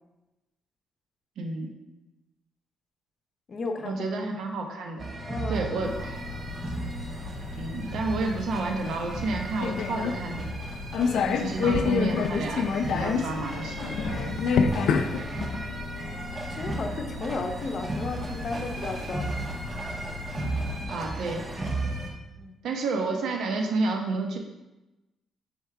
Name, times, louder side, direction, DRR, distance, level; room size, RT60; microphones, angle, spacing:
voice 1, 1.4-1.7 3.8-5.1 5.5-6.2 7.6-10.5 11.2-13.9 20.9-21.4 22.6-24.4, right 3 dB, 70° right, 2 dB, 1.1 m, -30 dB
voice 2, 3.5-4.0 5.3-5.7 11.0-11.4 15.2-16.2 16.5-19.4 22.4-22.5, left 3 dB, 45° left, 6 dB, 0.8 m, -35 dB
sound 1, 5.0-22.1, right 1 dB, 35° right, 1.1 m, -35 dB
sound 2, 5.8-20.9, left 5 dB, 75° left, 0.4 m, -31 dB
6.4 x 4.5 x 3.5 m, 1.0 s
cardioid pair, 90°, 0 cm